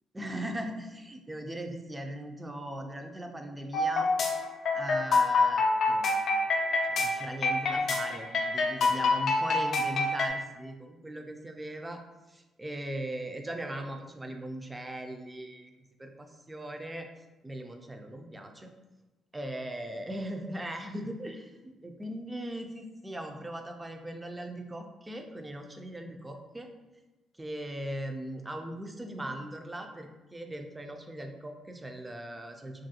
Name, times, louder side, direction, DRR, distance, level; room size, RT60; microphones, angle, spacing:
voice 1, 0.1-4.1 4.7-6.2 7.0-12.0 12.3-15.7 16.0-17.1 17.4-18.7 19.3-26.7 27.4-32.9, right 1 dB, 15° right, 4 dB, 0.4 m, -39 dB
sound 1, 3.7-10.3, left 3 dB, 65° left, 0.4 m, -26 dB
3.0 x 2.4 x 2.6 m, 1.1 s
cardioid pair, 90°, 0 cm